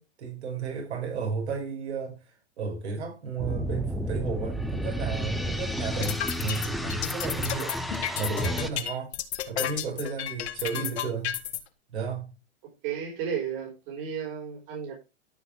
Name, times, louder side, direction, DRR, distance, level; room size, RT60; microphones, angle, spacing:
voice 1, 0.0-2.2 2.6-7.8 8.2-9.1 9.5-11.4 11.9-12.3, right 5 dB, 75° right, 5.6 m, -33 dB
sound 1, 3.4-8.7, equal, ahead, 0.5 m, -31 dB
sound 2, 5.8-11.6, left 11 dB, 70° left, 1.7 m, -32 dB
voice 2, 12.8-14.9, right 7 dB, 50° right, 5.0 m, -33 dB
13.5 x 5.7 x 3.4 m
hypercardioid pair, 130°, 34 cm